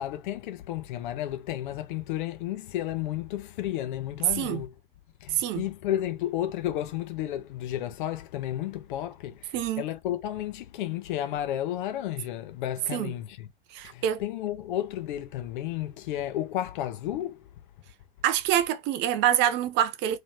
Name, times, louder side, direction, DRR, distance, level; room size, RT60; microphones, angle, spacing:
voice 1, 0.0-4.7 5.2-13.5 13.8-17.5, left 12 dB, 55° left, 1.0 m, -32 dB
voice 2, 5.3-5.6 9.5-9.8 12.9-13.1 13.7-14.2 18.2-20.2, right 11 dB, 40° right, 0.6 m, -26 dB
3.3 x 3.1 x 2.8 m
figure-of-eight pair, 95°, 30 cm